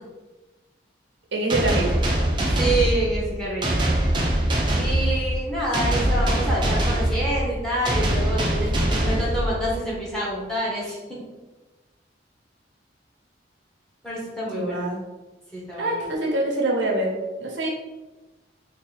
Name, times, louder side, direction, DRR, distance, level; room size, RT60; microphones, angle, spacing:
voice 1, 1.3-2.0 14.5-15.0 15.8-17.7, right 2 dB, 85° right, 0 dB, 0.8 m, -25 dB
sound 1, 1.5-10.0, right 1 dB, 25° right, 0.6 m, -23 dB
voice 2, 2.6-3.8 4.7-11.2 14.0-14.9 15.5-16.1, right 1 dB, 5° left, -6 dB, 1.0 m, -27 dB
3.1 x 2.9 x 4.0 m, 1.1 s
head